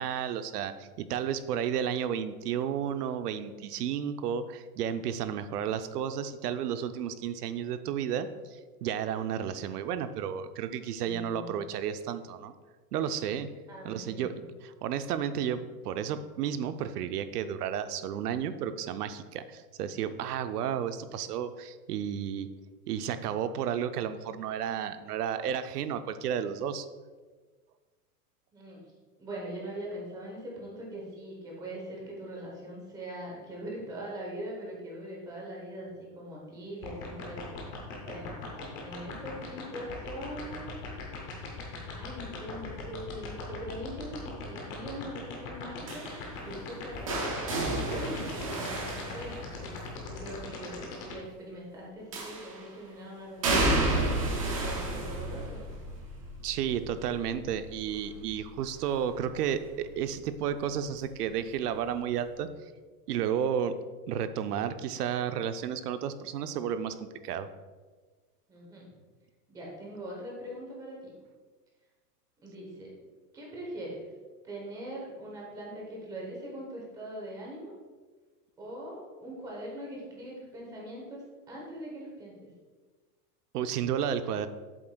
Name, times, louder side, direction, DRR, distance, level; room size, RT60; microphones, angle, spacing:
voice 1, 0.0-12.5 12.9-13.5 13.8-14.3 14.6-22.5 22.9-26.9 56.4-62.5 63.1-67.5 83.5-84.5, right 8 dB, 75° right, 11 dB, 0.7 m, -32 dB
voice 2, 13.7-14.2 28.5-28.8 29.2-37.6 38.0-38.4 38.8-40.8 41.9-46.1 46.4-47.3 47.8-54.2 54.6-55.6 68.5-68.9 69.5-71.1 72.4-72.9 73.3-74.1 74.4-77.7 78.6-82.5, right 1 dB, 10° right, -3 dB, 0.9 m, -42 dB
sound 1, 36.8-51.1, left 6 dB, 20° left, 0.6 m, -40 dB
sound 2, 45.9-49.9 52.1-52.7 53.4-59.2 59.6-60.0 61.2-61.3, right 2 dB, 25° right, 0.4 m, -32 dB
7.7 x 7.7 x 2.3 m, 1.4 s
supercardioid pair, 175°, 47 cm